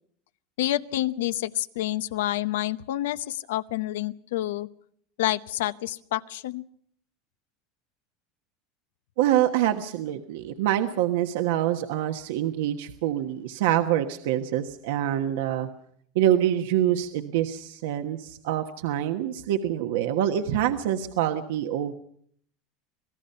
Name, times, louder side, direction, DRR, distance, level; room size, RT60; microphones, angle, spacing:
voice 1, 0.6-4.7 5.2-6.6, left 14 dB, 90° left, 14 dB, 0.8 m, -28 dB
voice 2, 9.2-15.7 16.1-21.9, right 12 dB, 80° right, 5 dB, 1.3 m, -25 dB
26.5 x 18.0 x 5.7 m, 0.64 s
supercardioid pair, 130°, 0 cm